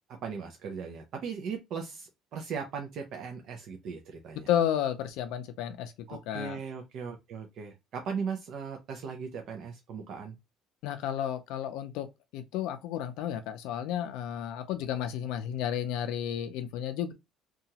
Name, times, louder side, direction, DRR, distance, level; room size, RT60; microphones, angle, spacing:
voice 1, 0.2-4.5 6.1-10.3, right 6 dB, 50° right, 0.4 m, -38 dB
voice 2, 4.5-6.6 10.8-12.1 12.3-17.1, left 10 dB, 80° left, 0.4 m, -32 dB
2.8 x 2.3 x 2.8 m
cardioid pair, 160°, 0 cm